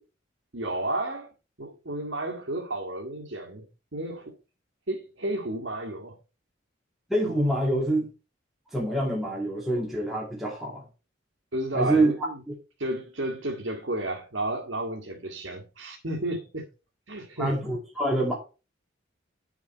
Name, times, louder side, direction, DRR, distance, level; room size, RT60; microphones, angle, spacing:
voice 1, 0.5-1.3 1.6-3.7 3.9-4.3 4.9-6.2 11.5-12.4 12.8-16.7 17.1-17.6, right 1 dB, 70° right, 1.9 m, -32 dB
voice 2, 7.1-8.1 8.7-10.8 11.7-12.1 12.5-12.6 17.4-18.4, right 1 dB, ahead, 2.2 m, -26 dB
9.5 x 7.1 x 4.5 m
head